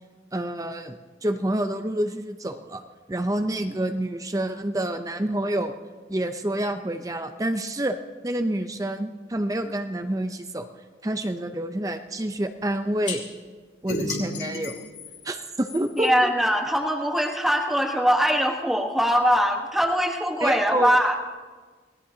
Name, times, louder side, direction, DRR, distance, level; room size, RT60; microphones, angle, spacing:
voice 1, 0.3-2.8 3.1-5.7 6.1-8.0 8.2-10.7 11.0-13.2 13.8-14.9 15.2-16.3 20.4-20.9, right 1 dB, 20° right, 7 dB, 0.6 m, -28 dB
sound 1, 13.1-13.2 13.9-16.1, left 3 dB, 85° left, 2.9 m, -32 dB
voice 2, 15.9-21.2, equal, ahead, 2 dB, 1.3 m, -22 dB
26.5 x 18.5 x 2.8 m, 1.4 s
head